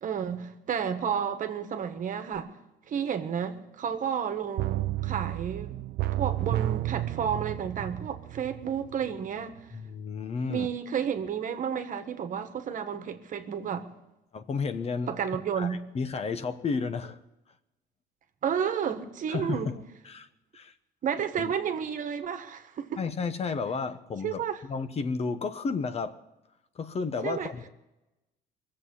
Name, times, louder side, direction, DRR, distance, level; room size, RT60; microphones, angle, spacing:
voice 1, 0.0-2.5 2.9-5.8 6.2-9.6 10.5-13.9 15.1-15.8 18.4-19.7 21.0-23.0 24.2-24.6 27.2-27.5, right 8 dB, 50° right, 1.4 m, -31 dB
sound 1, 4.6-9.3 9.6-9.7, right 15 dB, 70° right, 0.5 m, -31 dB
voice 2, 9.7-10.7 14.3-15.1 15.6-17.2 19.3-19.8 20.1-20.3 20.5-20.7 21.4-21.5 23.0-26.2 26.7-27.7, left 4 dB, 35° left, 1.0 m, -32 dB
21.5 x 7.7 x 8.4 m
cardioid pair, 110°, 17 cm